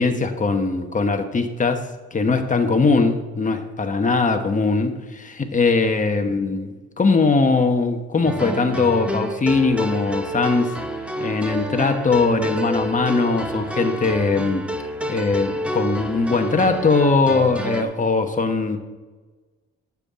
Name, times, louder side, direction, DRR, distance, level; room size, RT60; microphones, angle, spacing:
voice 1, 0.0-1.8 2.1-6.7 7.0-10.7 11.2-14.6 15.1-18.8, left 4 dB, 25° left, 5 dB, 1.2 m, -20 dB
sound 1, 8.2-17.8, right 1 dB, 5° right, 1.0 m, -28 dB
9.7 x 7.3 x 3.8 m, 1.2 s
cardioid pair, 90°, 30 cm